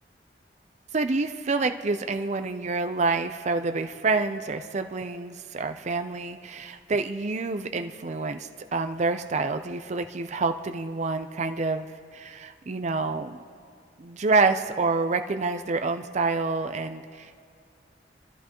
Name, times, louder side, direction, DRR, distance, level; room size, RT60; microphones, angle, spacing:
voice 1, 0.9-11.9 12.1-13.4 14.0-17.4, right 3 dB, 40° right, 8 dB, 0.5 m, -27 dB
25.5 x 13.5 x 3.0 m, 2.3 s
head